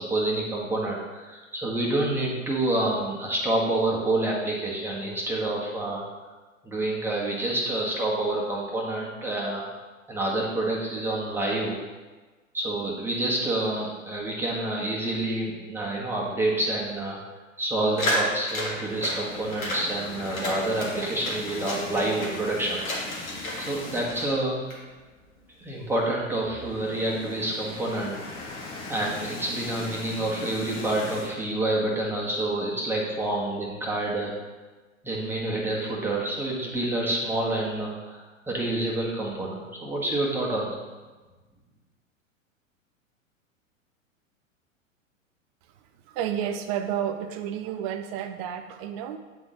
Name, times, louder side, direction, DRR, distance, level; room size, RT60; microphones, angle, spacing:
voice 1, 0.0-6.0 6.6-9.6 10.1-11.8 12.5-17.2 17.6-22.8 23.1-23.3 23.6-24.7 25.6-28.2 28.9-34.4 35.0-40.8, right 2 dB, 5° right, -4 dB, 1.3 m, -28 dB
sound 1, 18.0-19.2 19.5-19.8 20.2-22.4 22.7-23.7 23.9-24.8, left 1 dB, 85° left, 1.9 m, -31 dB
sound 2, 18.6-24.4 24.7-24.9 25.2-25.3 26.3-31.4, left 3 dB, 30° left, 1.4 m, -40 dB
voice 2, 46.0-49.2, right 9 dB, 30° right, 9 dB, 0.4 m, -31 dB
9.0 x 3.8 x 3.7 m, 1.3 s
figure-of-eight pair, 100°, 40 cm